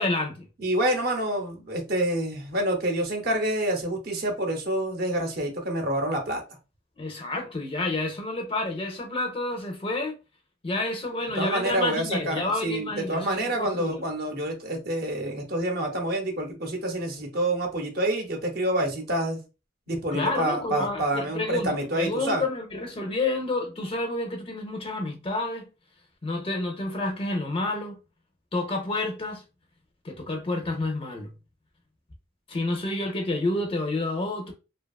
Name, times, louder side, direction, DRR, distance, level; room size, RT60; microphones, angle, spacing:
voice 1, 0.0-0.5 7.0-10.2 10.6-14.0 20.1-25.7 26.2-28.0 28.5-29.4 30.0-31.3 32.5-34.5, left 2 dB, 30° left, 0.5 m, -29 dB
voice 2, 0.6-6.4 11.4-19.4 19.9-22.5, right 1 dB, 55° right, 0.7 m, -27 dB
2.7 x 2.2 x 2.3 m
head